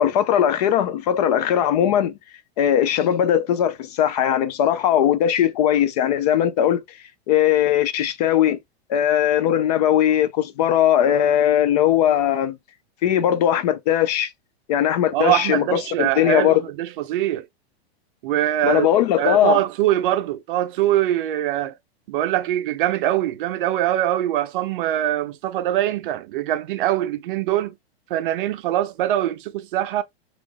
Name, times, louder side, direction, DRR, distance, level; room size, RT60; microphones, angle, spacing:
voice 1, 0.0-2.2 2.6-7.0 7.3-8.6 8.9-12.6 13.0-14.3 14.7-16.6 18.6-19.6, left 10 dB, 40° left, 0.4 m, -19 dB
voice 2, 15.1-17.5 18.2-18.9 19.2-21.8 22.1-27.8 28.1-30.0, right 13 dB, 55° right, 0.5 m, -23 dB
3.5 x 2.4 x 3.3 m
supercardioid pair, 150°, 32 cm